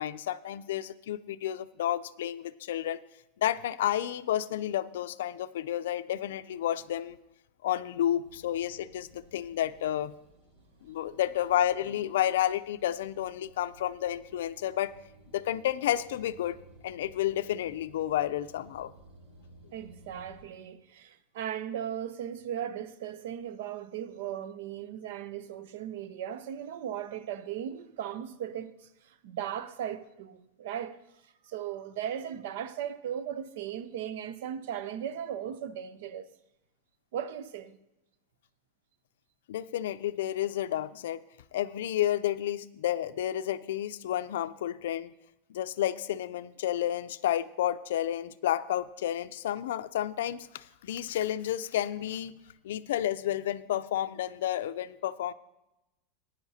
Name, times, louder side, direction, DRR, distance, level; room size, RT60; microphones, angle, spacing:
voice 1, 0.0-3.0 3.4-7.2 7.6-10.1 10.8-14.9 15.3-18.9 39.5-41.2 41.5-45.1 45.5-52.3 52.6-55.3, left 12 dB, 85° left, 0.4 m, -31 dB
sound 1, 8.2-20.4, right 1 dB, 55° right, 4.8 m, -57 dB
voice 2, 19.7-28.7 29.1-31.0 31.5-36.3 37.1-37.8, right 9 dB, 70° right, 0.6 m, -37 dB
15.5 x 9.8 x 2.7 m
supercardioid pair, 155°, 0 cm